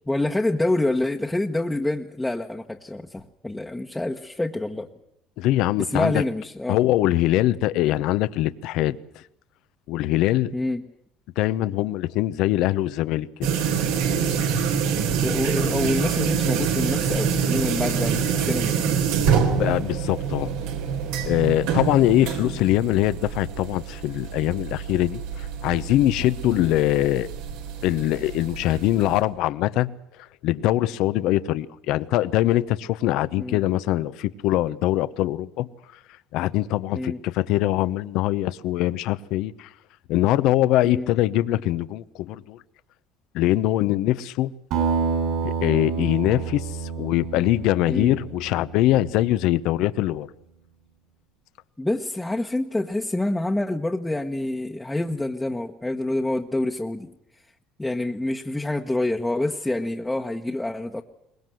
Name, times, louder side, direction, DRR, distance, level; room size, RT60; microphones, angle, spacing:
voice 1, 0.1-4.9 5.8-6.8 10.5-10.8 15.2-18.8 26.4-26.7 33.4-33.6 36.9-37.2 40.8-41.1 47.9-48.2 51.8-57.1 57.8-61.0, left 2 dB, 10° left, 1.2 m, -27 dB
voice 2, 5.4-6.2 6.7-9.2 9.9-10.5 11.4-13.5 19.5-20.5 21.2-27.3 27.8-29.9 30.4-35.7 36.3-39.7 40.1-42.6 43.3-44.5 45.4-50.3, left 15 dB, 70° left, 0.9 m, -23 dB
sound 1, 13.4-29.2, right 6 dB, 90° right, 3.6 m, -26 dB
Acoustic guitar, 44.7-49.5, right 5 dB, 70° right, 8.0 m, -28 dB
23.0 x 20.0 x 7.8 m
supercardioid pair, 105°, 0 cm